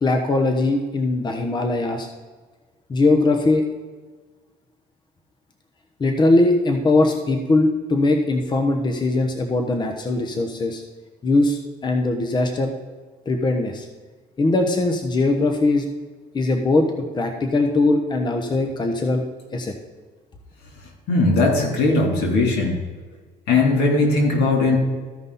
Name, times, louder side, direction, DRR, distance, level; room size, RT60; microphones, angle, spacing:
voice 1, 0.0-2.1 2.9-3.6 6.0-10.8 11.2-12.7 13.3-13.9 14.4-15.9 16.3-19.2 19.5-19.7, left 2 dB, 25° left, 4 dB, 1.0 m, -20 dB
voice 2, 21.1-22.8 23.5-24.8, left 3 dB, 80° left, 0 dB, 3.4 m, -18 dB
14.5 x 5.4 x 4.1 m, 1.4 s
cardioid pair, 110°, 17 cm